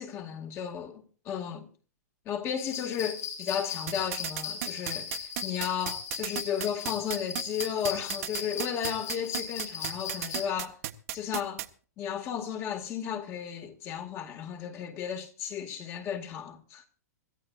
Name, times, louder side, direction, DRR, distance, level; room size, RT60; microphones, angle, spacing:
voice 1, 0.0-1.7 2.3-10.8 11.1-11.7 12.0-16.8, left 8 dB, 30° left, 2.2 m, -34 dB
sound 1, 2.6-10.5, left 8 dB, 70° left, 7.1 m, -38 dB
sound 2, 3.9-11.7, right 15 dB, 60° right, 1.4 m, -34 dB
26.0 x 14.5 x 2.6 m
hypercardioid pair, 145°, 9 cm